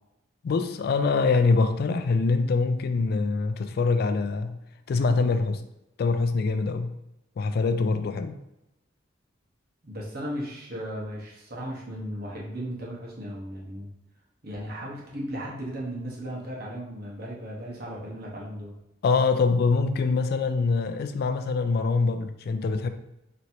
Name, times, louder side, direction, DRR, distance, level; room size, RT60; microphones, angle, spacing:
voice 1, 0.4-4.6 4.9-5.6 6.0-7.0 7.4-8.4 19.0-22.9, left 4 dB, 55° left, 9 dB, 0.3 m, -24 dB
voice 2, 9.8-13.9 14.4-18.8, equal, 50° right, -4 dB, 1.1 m, -36 dB
4.3 x 3.1 x 2.7 m, 0.90 s
head